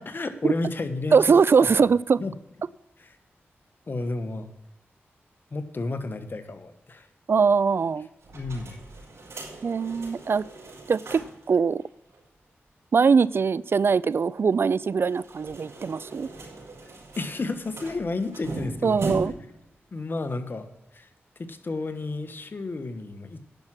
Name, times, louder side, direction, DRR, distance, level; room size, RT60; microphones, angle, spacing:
voice 1, 0.0-1.7 2.2-2.3 3.0-3.2 3.9-4.5 5.5-7.1 8.3-8.7 17.2-19.1 19.9-20.7 20.9-21.1 21.4-23.4, left 3 dB, 50° left, 1.3 m, -32 dB
voice 2, 1.1-2.2 7.3-8.1 9.6-10.4 10.9-11.8 12.9-16.3 18.8-19.3, right 5 dB, 55° right, 0.3 m, -21 dB
sound 1, 8.2-11.5 11.8-11.9 12.1-12.2 15.0-19.5, right 2 dB, 75° right, 5.1 m, -39 dB
10.5 x 6.1 x 7.6 m
cardioid pair, 60°, 5 cm